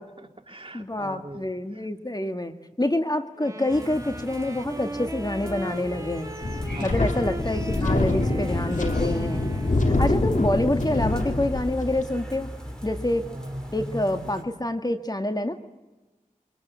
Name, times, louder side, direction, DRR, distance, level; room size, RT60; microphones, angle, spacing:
voice 1, 0.2-1.9 6.7-6.9 13.3-13.8, right 2 dB, 40° right, 4 dB, 2.8 m, -44 dB
voice 2, 0.7-6.3 6.8-9.5 10.0-12.5 12.8-13.3 13.7-15.6, left 1 dB, 30° left, 7 dB, 1.8 m, -27 dB
Wind instrument woodwind instrument, 3.4-10.2, right 1 dB, 25° right, 2.1 m, -38 dB
sound 1, 3.7-14.4, equal, 5° left, 5.8 m, -38 dB
Wind, 6.4-12.0, left 2 dB, 70° left, 2.5 m, -25 dB
23.5 x 23.5 x 8.2 m, 1.1 s
wide cardioid pair, 40°, 14 cm